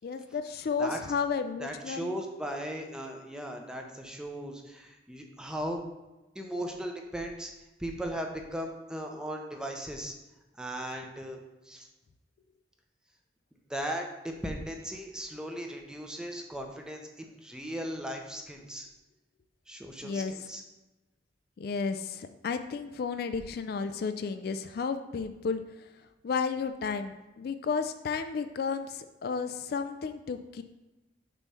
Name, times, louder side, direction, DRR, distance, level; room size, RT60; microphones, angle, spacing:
voice 1, 0.0-2.2 20.0-20.5 21.6-30.6, left 5 dB, 55° left, 9 dB, 0.3 m, -33 dB
voice 2, 1.6-5.8 6.3-7.5 7.8-10.1 10.6-11.4 11.7-11.9 13.7-18.9 19.7-20.6, equal, 5° right, 2 dB, 0.6 m, -37 dB
6.8 x 3.1 x 5.5 m, 1.0 s
head